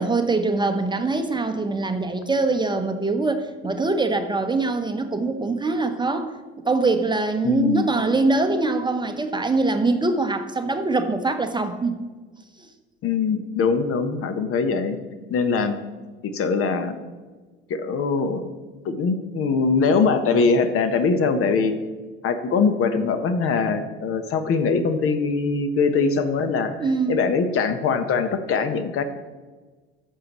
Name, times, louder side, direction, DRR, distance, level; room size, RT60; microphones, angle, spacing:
voice 1, 0.0-12.0 12.6-12.7 26.8-27.2, right 3 dB, 15° right, 7 dB, 0.9 m, -23 dB
voice 2, 7.4-7.9 13.0-15.0 15.3-15.7 16.3-17.0 17.7-18.5 18.8-21.7 22.2-26.8 27.1-29.0, left 4 dB, 45° left, 9 dB, 1.1 m, -22 dB
14.5 x 6.6 x 3.1 m, 1.3 s
hypercardioid pair, 65°, 31 cm